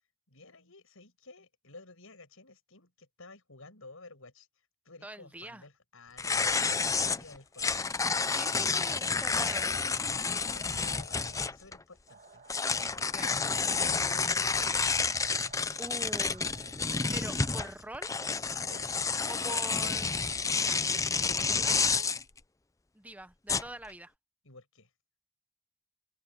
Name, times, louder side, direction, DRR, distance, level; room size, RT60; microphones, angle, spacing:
voice 1, 0.3-7.8 10.2-15.1 18.7-20.0 24.4-24.9, left 3 dB, 75° left, 7.2 m, -53 dB
voice 2, 5.0-5.6 8.2-9.7 13.0-13.3 15.5-16.7 17.1-18.1 19.3-20.2 20.4-20.8 21.6-22.1 22.9-24.1, right 1 dB, 5° right, 0.8 m, -44 dB
sound 1, 6.2-11.8 12.5-22.2 23.5-23.9, left 4 dB, 15° left, 0.5 m, -30 dB
sound 2, 12.1-17.7, right 6 dB, 45° right, 1.5 m, -55 dB
open air
head